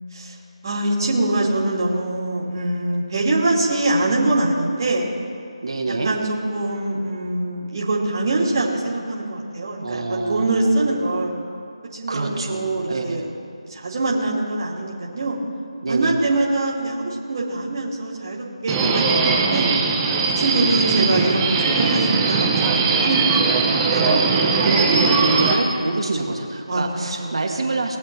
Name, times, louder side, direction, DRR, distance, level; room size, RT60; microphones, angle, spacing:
voice 1, 0.6-5.1 5.9-11.3 12.0-13.3 13.7-15.4 15.9-19.7 20.4-23.9 25.4-25.5 26.7-26.8 27.2-27.7, right 2 dB, 35° right, -5 dB, 2.5 m, -23 dB
voice 2, 5.6-6.1 9.8-10.9 12.1-13.2 15.8-16.2 20.4-21.4 23.9-28.0, right 3 dB, 55° right, 1 dB, 2.1 m, -26 dB
Subway metro underground, 18.7-25.5, right 4 dB, 10° right, 0.9 m, -20 dB
21.5 x 7.6 x 4.6 m, 2.4 s
figure-of-eight pair, 165°, 3 cm